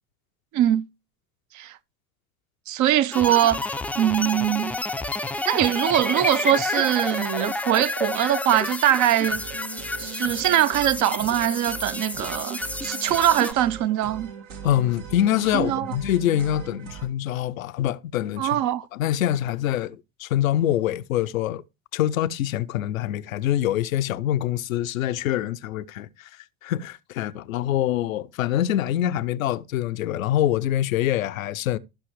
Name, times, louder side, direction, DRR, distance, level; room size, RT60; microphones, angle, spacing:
voice 1, 0.5-0.8 1.5-1.8 2.7-4.8 5.5-9.4 10.0-14.3 15.5-16.0 18.4-18.9, right 12 dB, 45° right, 0.6 m, -22 dB
sound 1, 3.1-13.5, left 2 dB, 5° left, 0.4 m, -30 dB
sound 2, 9.1-17.1, right 6 dB, 70° right, 2.1 m, -40 dB
voice 2, 14.6-18.6 18.9-21.6 21.9-26.3 26.6-31.8, left 12 dB, 85° left, 0.6 m, -25 dB
13.5 x 5.6 x 3.0 m
hypercardioid pair, 75°, 40 cm